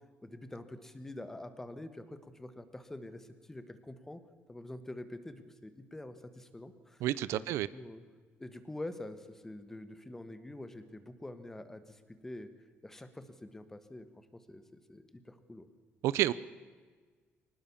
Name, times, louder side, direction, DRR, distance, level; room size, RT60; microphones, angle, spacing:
voice 1, 0.2-4.2 4.5-8.0 8.4-12.5 12.8-15.7, left 1 dB, 10° left, 10 dB, 1.4 m, -46 dB
voice 2, 7.0-7.7 16.0-16.3, right 14 dB, 85° right, 17 dB, 0.6 m, -29 dB
23.0 x 19.5 x 7.2 m, 1.5 s
cardioid pair, 155°, 5 cm